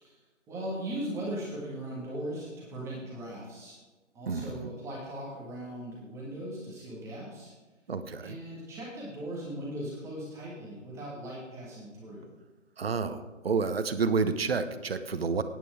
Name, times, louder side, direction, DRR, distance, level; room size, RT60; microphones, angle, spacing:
voice 1, 0.5-3.8 4.1-7.5 8.2-12.3, right 1 dB, 5° right, -5 dB, 1.7 m, -38 dB
voice 2, 4.3-4.7 7.9-8.4 12.8-15.4, right 4 dB, 50° right, 11 dB, 1.0 m, -30 dB
15.5 x 9.4 x 4.9 m, 1.3 s
figure-of-eight pair, 150°, 38 cm